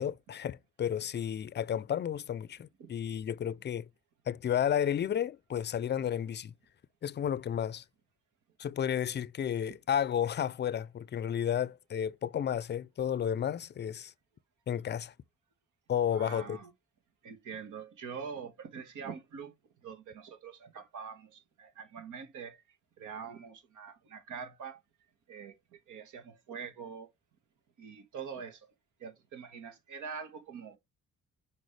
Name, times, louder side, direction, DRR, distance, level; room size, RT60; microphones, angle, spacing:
voice 1, 0.0-3.9 4.3-6.5 7.0-7.8 8.6-14.1 14.7-15.1 15.9-16.6, left 9 dB, 35° left, 0.5 m, -32 dB
voice 2, 16.1-16.7 17.2-19.5 19.8-24.8 25.3-27.1 27.8-28.7 29.0-30.8, right 6 dB, 80° right, 1.8 m, -44 dB
6.3 x 5.3 x 3.2 m
cardioid pair, 90°, 30 cm